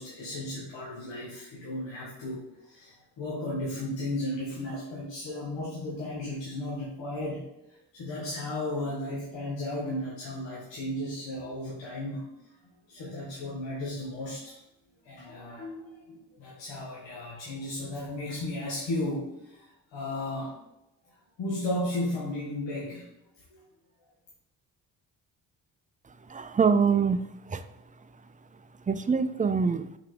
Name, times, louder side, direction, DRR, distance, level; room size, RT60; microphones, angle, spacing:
voice 1, 0.0-7.4 7.9-12.3 12.9-14.6 15.0-20.6 21.4-23.0 23.5-23.6, left 1 dB, 80° left, -5 dB, 1.7 m, -34 dB
voice 2, 26.3-27.6 28.9-29.9, right 5 dB, 20° right, 11 dB, 0.4 m, -25 dB
5.6 x 4.9 x 3.8 m, 0.87 s
cardioid pair, 70°, 44 cm